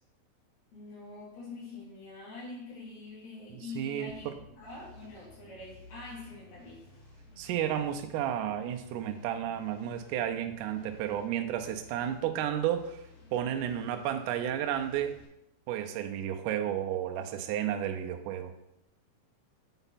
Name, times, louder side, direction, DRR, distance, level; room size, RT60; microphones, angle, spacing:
voice 1, 0.7-6.9, left 3 dB, 80° left, -6 dB, 4.4 m, -45 dB
voice 2, 3.5-4.3 7.4-13.0 13.3-15.2 15.7-18.5, right 10 dB, 80° right, 5 dB, 1.9 m, -32 dB
sound 1, 4.1-15.3, left 1 dB, 40° left, 2.7 m, -55 dB
8.0 x 4.5 x 4.1 m, 0.83 s
omnidirectional pair, 4.3 m